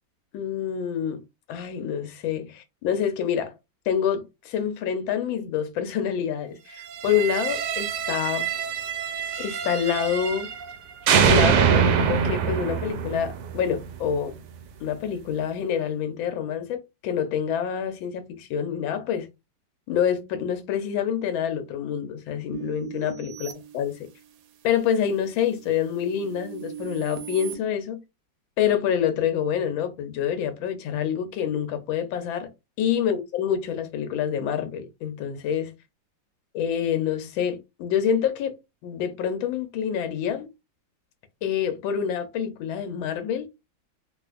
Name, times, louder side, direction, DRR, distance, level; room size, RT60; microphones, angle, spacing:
voice 1, 0.3-1.2 1.5-3.5 3.9-8.5 9.4-10.5 11.2-14.3 14.8-19.3 19.9-24.1 24.6-28.0 28.6-32.5 32.8-35.7 36.5-38.6 38.8-40.5 41.4-43.5, left 8 dB, 85° left, 1.4 m, -27 dB
sound 1, 6.9-10.8 11.1-14.1, right 7 dB, 70° right, 1.0 m, -24 dB
sound 2, 22.5-24.5 25.0-27.5, right 10 dB, 90° right, 1.4 m, -39 dB
4.1 x 2.4 x 2.4 m
omnidirectional pair, 2.1 m